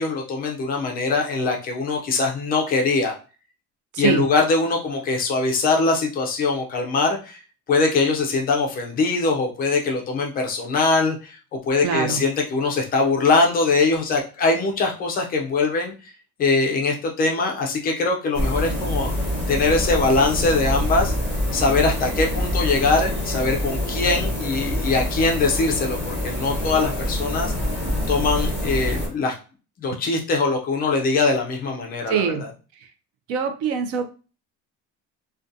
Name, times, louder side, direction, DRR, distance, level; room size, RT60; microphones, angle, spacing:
voice 1, 0.0-3.1 4.0-7.4 7.7-11.4 11.7-15.9 16.4-19.1 19.5-21.1 21.5-27.5 28.1-29.3 29.8-32.5, left 3 dB, 30° left, 1 dB, 0.4 m, -22 dB
voice 2, 3.9-4.2 11.8-12.2 32.1-32.4 33.3-34.1, right 7 dB, 55° right, 7 dB, 0.4 m, -23 dB
sound 1, 18.3-29.1, left 1 dB, 5° right, 1.1 m, -25 dB
2.5 x 2.2 x 2.5 m, 0.35 s
cardioid pair, 175°, 29 cm